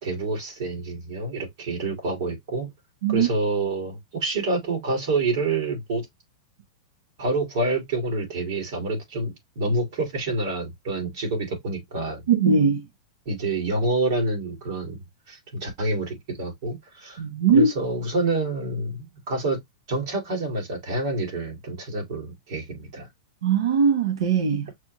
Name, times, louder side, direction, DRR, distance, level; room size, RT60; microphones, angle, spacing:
voice 1, 0.0-2.7 3.1-6.1 7.2-12.2 13.3-17.2 17.5-19.6 19.9-23.1, right 2 dB, 40° right, 2.0 m, -27 dB
voice 2, 12.3-12.8 17.2-17.7 23.4-24.7, right 5 dB, 90° right, 1.0 m, -20 dB
6.0 x 2.2 x 3.0 m
supercardioid pair, 175°, 3 cm